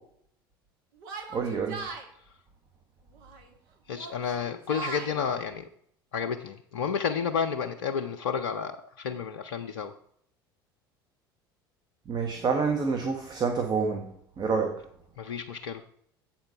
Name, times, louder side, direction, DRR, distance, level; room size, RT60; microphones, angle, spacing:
Yell, 1.0-2.1 3.1-3.5 3.9-5.1, right 5 dB, 60° right, 1.4 m, -40 dB
voice 1, 1.3-1.8 12.1-14.1 14.4-14.8, right 5 dB, 35° right, 3 dB, 1.2 m, -27 dB
voice 2, 3.9-5.7 6.1-9.9 15.2-15.8, left 6 dB, 75° left, 6 dB, 0.5 m, -31 dB
7.6 x 4.4 x 6.8 m, 0.65 s
figure-of-eight pair, 70°, 12 cm